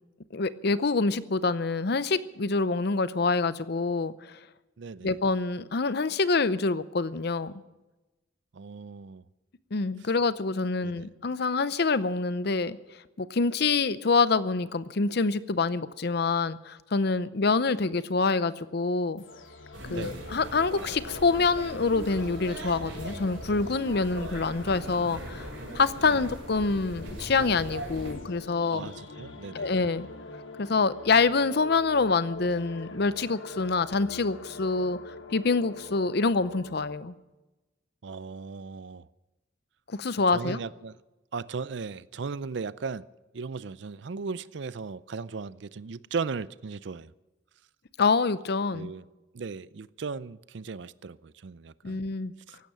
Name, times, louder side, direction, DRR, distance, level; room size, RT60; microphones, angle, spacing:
voice 1, 0.3-4.4 5.0-7.5 9.7-12.8 13.2-19.2 19.9-25.5 25.7-28.9 29.5-30.1 30.6-37.1 39.9-40.6 48.0-48.9 51.8-52.3, left 4 dB, 55° left, 0.6 m, -26 dB
voice 2, 4.8-5.1 8.5-9.2 10.8-11.1 19.9-20.3 26.0-26.2 28.7-29.7 38.0-39.1 40.3-41.0 41.3-43.1 43.3-47.1 48.7-49.1 49.3-52.1 52.5-52.6, right 4 dB, 65° right, 0.5 m, -37 dB
sound 1, 19.2-37.0, left 2 dB, 90° left, 1.3 m, -45 dB
sound 2, 19.7-28.1, right 1 dB, 80° right, 6.6 m, -40 dB
16.0 x 12.0 x 7.5 m
head